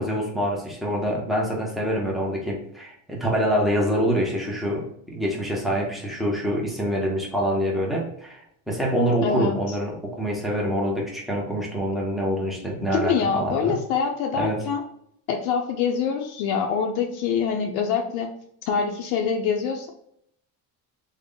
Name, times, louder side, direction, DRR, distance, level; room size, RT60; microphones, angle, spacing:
voice 1, 0.0-13.8 14.3-14.6, equal, ahead, -2 dB, 0.5 m, -26 dB
voice 2, 9.2-9.8 12.9-14.8 15.3-18.3 18.6-19.9, left 6 dB, 70° left, 2 dB, 0.6 m, -25 dB
3.6 x 2.1 x 3.6 m, 0.70 s
cardioid pair, 170°, 38 cm